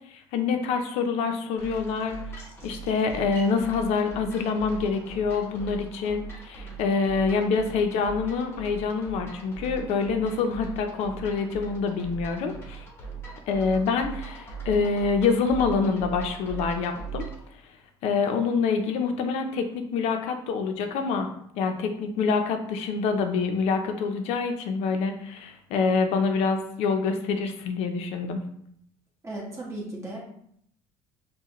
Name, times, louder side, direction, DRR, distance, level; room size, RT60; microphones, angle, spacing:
voice 1, 0.1-2.2 2.6-12.9 13.5-17.3 18.0-28.4, left 5 dB, 65° left, 5 dB, 0.6 m, -26 dB
sound 1, 1.6-17.5, right 6 dB, 20° left, 0.9 m, -40 dB
voice 2, 29.2-30.2, right 2 dB, 25° right, -4 dB, 1.4 m, -35 dB
5.6 x 2.3 x 3.0 m, 0.69 s
cardioid pair, 130°, 12 cm